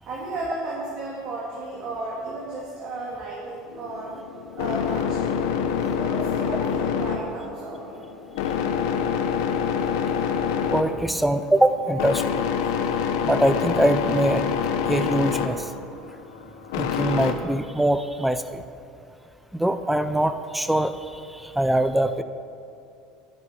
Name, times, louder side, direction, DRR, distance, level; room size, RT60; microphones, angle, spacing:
voice 1, 0.0-4.2 4.5-5.4 5.9-8.0, right 2 dB, 35° right, -5 dB, 2.4 m, -34 dB
sound 1, 3.7-17.3, left 7 dB, 90° left, 1.1 m, -26 dB
voice 2, 10.7-12.2 13.2-14.4 14.9-15.7 16.8-18.6 19.5-22.2, right 1 dB, 5° right, 11 dB, 0.4 m, -23 dB
11.0 x 10.5 x 5.8 m, 2.7 s
cardioid pair, 165°, 2 cm